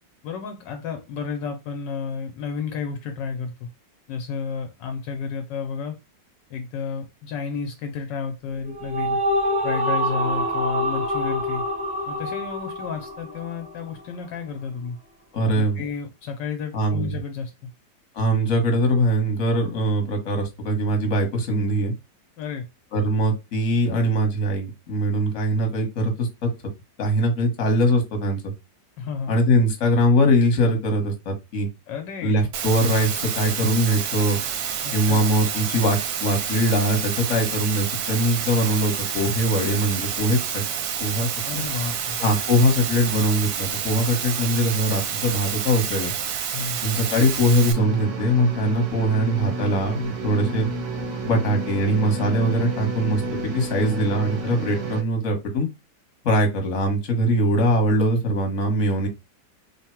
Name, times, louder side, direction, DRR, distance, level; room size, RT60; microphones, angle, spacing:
voice 1, 0.2-3.7 4.1-6.0 6.5-9.2 9.6-11.6 12.1-15.0 15.4-17.5 22.4-22.7 29.0-29.3 31.9-32.4 34.8-35.2 41.5-42.2 46.5-46.8, left 6 dB, 75° left, 5 dB, 1.2 m, -31 dB
sound 1, 8.5-14.0, equal, 5° right, 0.7 m, -26 dB
voice 2, 15.3-15.8 16.7-17.1 18.1-21.9 22.9-26.5 27.0-28.5 29.3-31.7 32.2-34.4 34.9-40.6 41.0-41.6 42.2-46.1 46.8-50.7 51.2-55.7 56.2-59.1, equal, 45° left, 3 dB, 1.2 m, -22 dB
Water, 32.5-47.7, right 8 dB, 90° right, 1.4 m, -29 dB
sound 2, 47.7-55.0, right 2 dB, 55° right, 0.7 m, -30 dB
3.5 x 2.1 x 4.3 m, 0.25 s
omnidirectional pair, 2.0 m